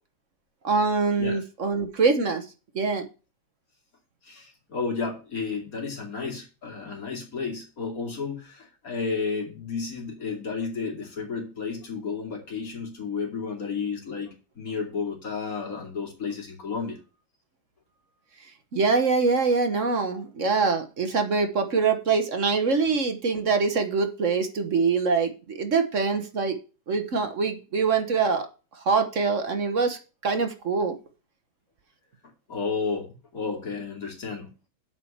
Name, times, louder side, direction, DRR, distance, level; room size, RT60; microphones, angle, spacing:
voice 1, 0.6-2.5 2.7-3.1 18.7-26.6 26.9-28.5 28.8-30.9, right 4 dB, 45° right, 7 dB, 1.1 m, -24 dB
voice 2, 4.2-17.0 32.5-34.5, left 5 dB, 40° left, 1 dB, 3.1 m, -32 dB
8.4 x 5.1 x 7.2 m, 0.32 s
omnidirectional pair, 2.4 m